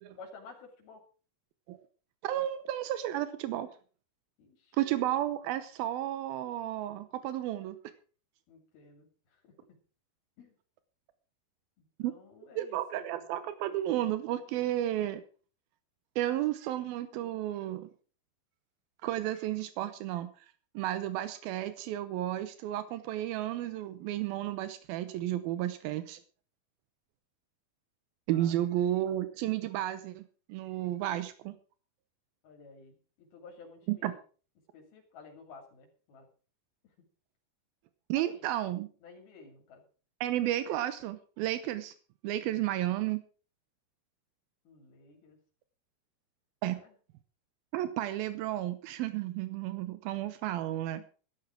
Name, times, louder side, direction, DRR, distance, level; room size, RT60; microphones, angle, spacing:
voice 1, 0.1-1.0 4.4-4.8 8.5-9.5 10.4-10.6 11.8-13.3 28.3-28.6 32.4-34.2 34.7-36.3 36.8-36.9 38.1-38.5 39.0-39.8 44.6-45.4 46.7-47.0, left 4 dB, 85° left, 1 dB, 4.7 m, -53 dB
voice 2, 2.2-3.7 4.8-7.8 12.0-12.1 12.6-15.2 16.2-17.9 19.0-20.3 20.7-26.2 28.3-31.5 33.9-34.1 38.1-38.9 40.2-41.9 42.2-43.2 46.6-46.8 47.7-51.0, right 13 dB, 85° right, 13 dB, 2.7 m, -32 dB
13.5 x 12.0 x 4.9 m, 0.39 s
omnidirectional pair, 4.3 m